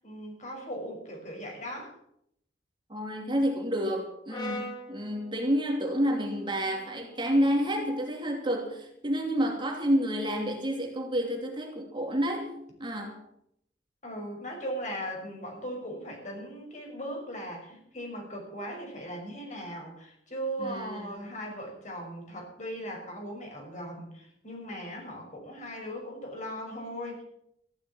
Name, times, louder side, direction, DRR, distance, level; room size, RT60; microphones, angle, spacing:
voice 1, 0.0-1.9 14.0-27.2, equal, 45° left, 6.1 m, -38 dB
voice 2, 2.9-12.5 12.8-13.2 20.6-21.1, equal, 25° right, 2.8 m, -29 dB
Brass instrument, 4.3-8.5, left 1 dB, 25° left, 4.3 m, -44 dB
15.0 x 12.5 x 7.1 m
head